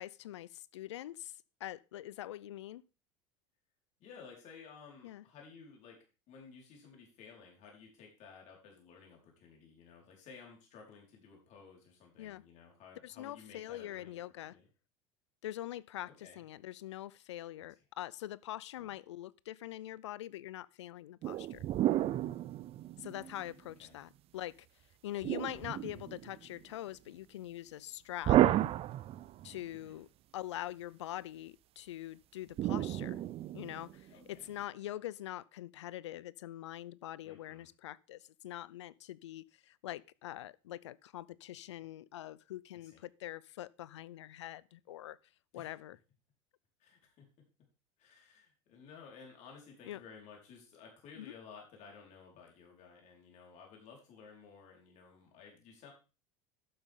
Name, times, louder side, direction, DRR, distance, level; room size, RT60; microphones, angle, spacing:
voice 1, 0.0-1.3 1.6-2.8 5.0-5.2 12.2-12.4 13.0-14.6 15.4-21.6 23.0-24.6 25.0-28.4 29.4-30.1 30.3-33.2 33.5-45.2 45.5-46.0 49.9-50.0 51.2-51.3, left 13 dB, 90° left, 0.5 m, -44 dB
voice 2, 4.0-6.0 6.3-14.2 14.5-14.7 16.0-16.4 18.8-18.9 23.2-24.0 29.7-30.0 34.1-34.3 37.2-37.7 42.8-43.0 45.5-45.8 46.8-47.3 48.0-55.9, left 5 dB, 55° left, 4.7 m, -55 dB
sound 1, 21.2-23.5 25.2-26.5 28.3-29.6 32.6-34.0, right 13 dB, 40° right, 0.5 m, -32 dB
12.0 x 7.8 x 3.7 m
hypercardioid pair, 95°, 14 cm